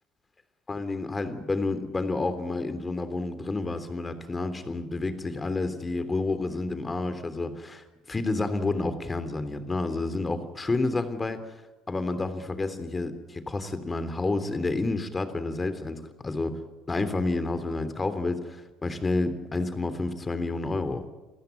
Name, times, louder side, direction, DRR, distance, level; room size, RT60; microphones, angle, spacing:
voice 1, 0.7-11.5 11.9-16.6 16.9-21.0, left 3 dB, 25° left, 11 dB, 3.3 m, -30 dB
28.0 x 15.0 x 9.4 m, 1.1 s
hypercardioid pair, 65°, 0 cm